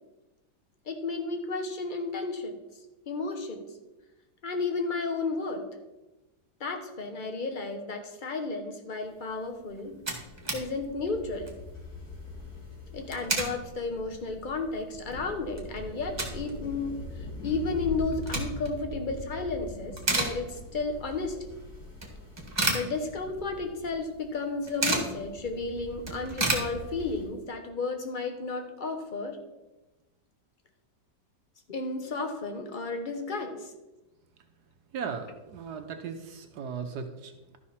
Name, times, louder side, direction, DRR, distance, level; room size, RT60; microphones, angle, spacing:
voice 1, 0.9-2.6 3.1-3.6 4.4-5.6 6.6-10.0 10.5-11.5 12.9-17.0 17.4-21.5 22.7-29.4 31.7-33.7, left 3 dB, 35° left, 6 dB, 1.0 m, -33 dB
sound 1, 9.5-9.6 9.7-10.7 11.0-11.1 11.4-11.7 12.9-13.6 14.1-14.2 14.7-14.8 15.1-16.5 16.8-16.9 17.9-18.8 19.2-19.5 19.8-20.9 21.2-21.3 22.0-23.5 23.8-23.9 24.1-25.2 25.6-25.7 25.9-27.3, right 2 dB, 15° right, 1.4 m, -31 dB
sound 2, 9.8-27.2, left 2 dB, 60° left, 4.2 m, -43 dB
voice 2, 34.9-37.6, right 6 dB, 70° right, 6 dB, 1.3 m, -37 dB
12.5 x 5.7 x 4.2 m, 1.1 s
omnidirectional pair, 1.8 m